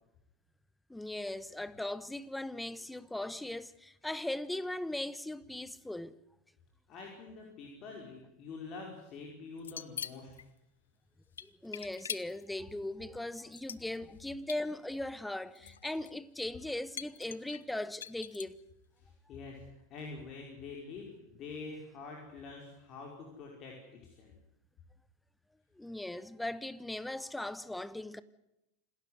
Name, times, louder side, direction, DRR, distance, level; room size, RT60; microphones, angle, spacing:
voice 1, 0.9-6.2 11.4-18.6 25.8-28.2, left 1 dB, 5° left, 1.1 m, -39 dB
voice 2, 6.9-10.3 19.0-24.3, left 4 dB, 45° left, 5.3 m, -46 dB
sound 1, 9.6-10.4 11.4-12.4 13.3-14.2 14.5-14.6 15.5-16.1 16.4-16.5 17.0-18.6, left 8 dB, 85° left, 0.8 m, -42 dB
27.5 x 13.0 x 9.6 m
hypercardioid pair, 90°, 0 cm